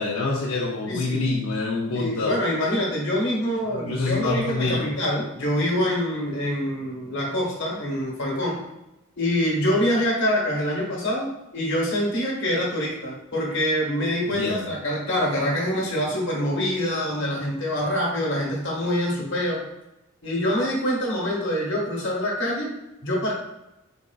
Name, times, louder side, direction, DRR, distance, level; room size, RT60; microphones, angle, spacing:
voice 1, 0.0-2.4 3.7-4.9 14.3-14.7, left 3 dB, 80° left, -4 dB, 0.6 m, -26 dB
voice 2, 0.9-1.3 1.9-8.6 9.2-11.3 11.5-19.6 20.2-22.7 23.0-23.3, equal, 55° left, -2 dB, 1.2 m, -25 dB
4.2 x 3.6 x 2.4 m, 0.93 s
head